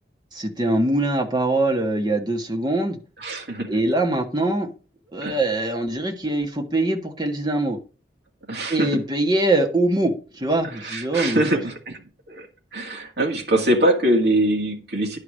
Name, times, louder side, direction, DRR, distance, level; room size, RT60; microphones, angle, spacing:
voice 1, 0.3-3.0 3.7-4.7 5.1-7.8 8.7-11.4, right 2 dB, 25° right, 3 dB, 1.5 m, -23 dB
voice 2, 3.2-3.7 5.2-5.4 8.5-8.9 10.8-12.0 12.3-12.5 12.7-15.2, right 1 dB, 65° right, 0 dB, 2.2 m, -23 dB
10.5 x 4.9 x 6.3 m, 0.35 s
head